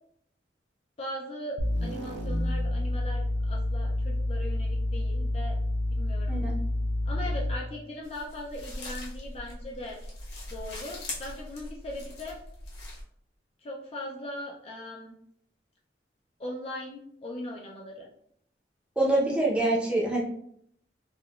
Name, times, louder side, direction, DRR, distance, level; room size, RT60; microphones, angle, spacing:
voice 1, 1.0-5.6 5.9-6.4 7.1-10.0 10.5-12.4 13.6-15.2 16.4-18.1, left 1 dB, 35° left, -3 dB, 0.4 m, -39 dB
sound 1, 1.6-7.7, left 1 dB, 75° right, 0.4 m, -29 dB
sound 2, 8.0-13.0, left 1 dB, 60° left, 1.1 m, -41 dB
voice 2, 19.0-20.2, right 2 dB, 5° right, -4 dB, 0.6 m, -25 dB
3.5 x 2.2 x 2.3 m, 0.69 s
head